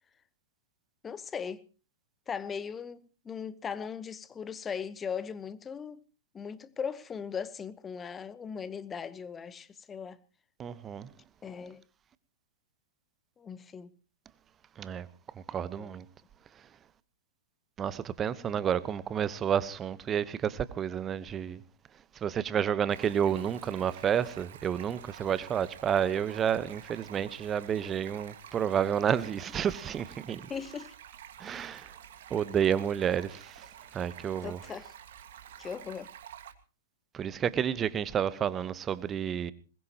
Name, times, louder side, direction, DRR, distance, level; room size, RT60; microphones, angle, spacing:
voice 1, 1.0-1.7 2.3-6.0 6.3-10.2 11.4-11.8 13.4-13.9 15.8-15.9 30.5-30.9 34.4-34.9 35.6-36.1, left 6 dB, 15° left, 1.0 m, -38 dB
voice 2, 10.6-11.1 14.8-15.1 15.5-16.0 17.8-21.6 22.2-30.4 31.4-31.9 32.3-33.7 33.9-34.6 37.1-39.5, right 8 dB, 20° right, 1.0 m, -30 dB
Stream, 22.9-36.5, right 10 dB, 55° right, 1.8 m, -50 dB
21.5 x 20.5 x 3.0 m
figure-of-eight pair, 105°, 0 cm